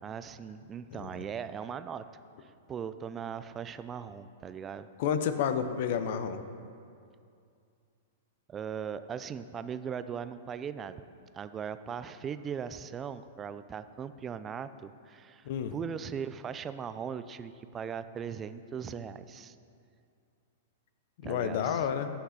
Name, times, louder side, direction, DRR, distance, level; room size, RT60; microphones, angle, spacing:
voice 1, 0.0-2.0 2.4-4.9 8.5-11.0 11.3-19.6 21.2-21.9, right 7 dB, 25° right, 12 dB, 0.4 m, -39 dB
voice 2, 5.0-6.4 15.5-15.7 21.2-22.1, left 8 dB, 55° left, 10 dB, 0.7 m, -30 dB
14.5 x 5.8 x 4.2 m, 2.4 s
hypercardioid pair, 110°, 0 cm